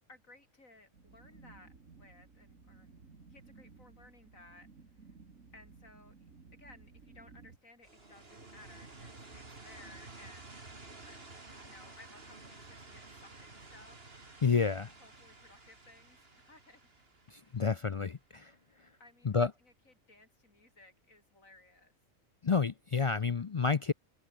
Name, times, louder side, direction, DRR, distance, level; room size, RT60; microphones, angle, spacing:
voice 1, 0.1-2.9 3.3-4.7 5.0-5.1 5.5-6.1 6.5-10.5 11.1-11.2 11.6-14.0 15.0-16.8 17.4-17.5 19.0-22.0, left 2 dB, 90° left, 5.8 m, -59 dB
sound 1, 0.9-7.6, right 4 dB, 80° right, 2.8 m, -57 dB
sound 2, 7.8-18.5, right 3 dB, 45° right, 3.2 m, -52 dB
voice 2, 14.4-14.9 17.3-18.5 19.2-19.5 22.4-23.9, left 5 dB, 60° left, 0.3 m, -29 dB
omnidirectional pair, 1.4 m